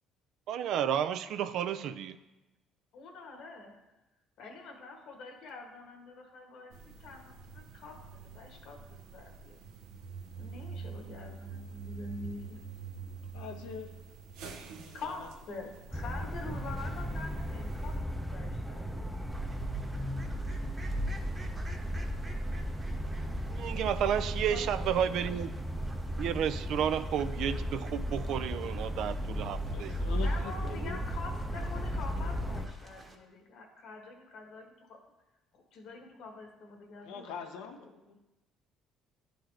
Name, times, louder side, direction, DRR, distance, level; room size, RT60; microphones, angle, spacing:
voice 1, 0.5-2.1 23.5-25.5 26.2-29.9, right 9 dB, 70° right, 12 dB, 0.4 m, -31 dB
voice 2, 2.9-3.7 4.4-8.8 9.1-9.6 10.4-12.6 14.9-19.1 24.5-25.6 30.0-35.0 35.5-38.1, left 3 dB, 70° left, 2 dB, 1.4 m, -46 dB
sound 1, 6.7-18.0, right 5 dB, 85° right, 0.8 m, -46 dB
voice 3, 13.3-13.9 14.8-15.3 29.7-31.0 37.0-38.2, left 6 dB, 85° left, 4 dB, 0.7 m, -43 dB
sound 2, 15.9-32.7, equal, 5° right, 0.6 m, -35 dB
Fowl, 19.3-33.2, right 3 dB, 25° right, 1.1 m, -51 dB
11.5 x 3.9 x 3.3 m, 1.1 s
supercardioid pair, 85°, 0 cm